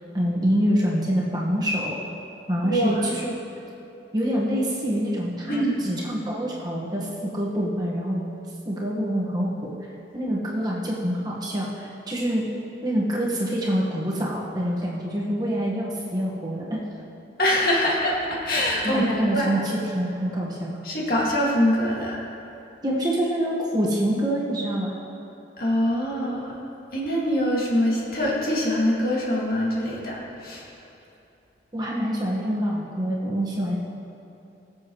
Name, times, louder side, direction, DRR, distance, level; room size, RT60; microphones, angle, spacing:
voice 1, 0.1-2.0 2.5-3.4 4.1-8.2 8.6-9.5 10.1-12.5 12.8-16.8 18.8-20.7 22.8-25.0 31.7-33.8, equal, 20° right, -5 dB, 1.5 m, -26 dB
voice 2, 2.6-3.0 5.5-5.7 17.4-18.2 18.4-19.6 20.8-22.2 25.6-26.5 26.9-30.6, equal, 50° left, -5 dB, 2.2 m, -24 dB
20.5 x 7.5 x 3.1 m, 2.8 s
head